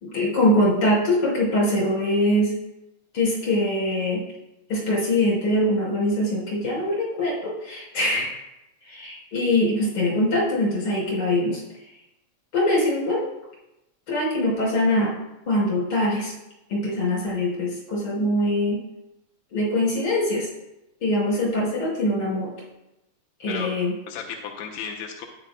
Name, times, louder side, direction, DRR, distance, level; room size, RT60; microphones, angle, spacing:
voice 1, 0.0-2.5 3.1-4.2 4.7-8.4 8.9-11.6 12.5-13.3 14.1-15.2 15.5-16.3 16.7-18.8 19.5-20.5 21.0-22.5 23.4-23.9, left 1 dB, 50° left, -4 dB, 4.9 m, -23 dB
voice 2, 23.5-23.8 24.1-25.3, left 7 dB, 80° left, 1 dB, 2.0 m, -34 dB
13.0 x 9.7 x 2.2 m, 0.92 s
omnidirectional pair, 3.3 m